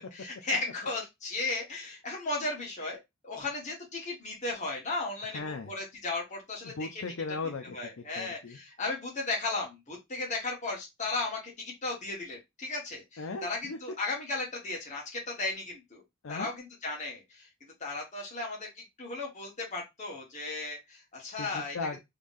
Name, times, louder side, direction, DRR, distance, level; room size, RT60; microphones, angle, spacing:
voice 1, 0.1-7.0 7.7-16.0 16.3-21.8, left 3 dB, 35° left, -2 dB, 1.4 m, -35 dB
voice 2, 5.3-5.7 6.6-8.6 13.2-13.8 16.2-16.5 21.4-22.0, left 4 dB, 65° left, 6 dB, 0.5 m, -37 dB
3.6 x 3.3 x 2.6 m, 0.20 s
head